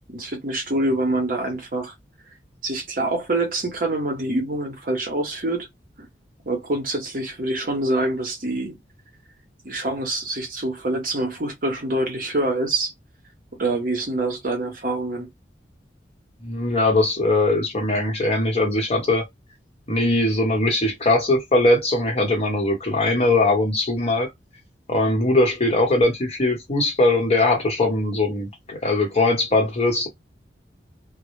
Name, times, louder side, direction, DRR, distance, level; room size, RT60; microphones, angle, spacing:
voice 1, 0.1-1.9 2.6-5.7 6.0-6.1 6.4-8.8 9.6-12.9 13.5-15.3, right 2 dB, 50° right, 0.8 m, -25 dB
voice 2, 16.4-19.3 19.9-24.3 24.9-30.1, left 2 dB, 35° left, 0.9 m, -20 dB
2.0 x 2.0 x 3.0 m
head